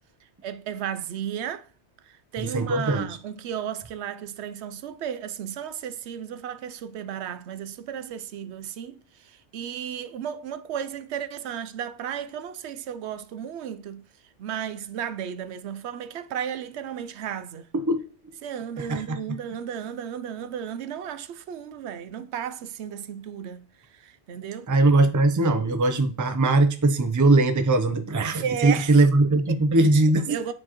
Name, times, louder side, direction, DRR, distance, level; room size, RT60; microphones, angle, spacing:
voice 1, 0.4-1.7 2.0-14.0 14.4-17.7 18.4-24.7 28.4-29.0 29.5-29.6 30.3-30.5, right 8 dB, 75° right, 0.8 m, -34 dB
voice 2, 2.4-3.1 17.7-18.0 18.8-19.2 24.7-30.5, right 2 dB, 25° right, 0.5 m, -21 dB
9.7 x 4.5 x 3.0 m
omnidirectional pair, 1.2 m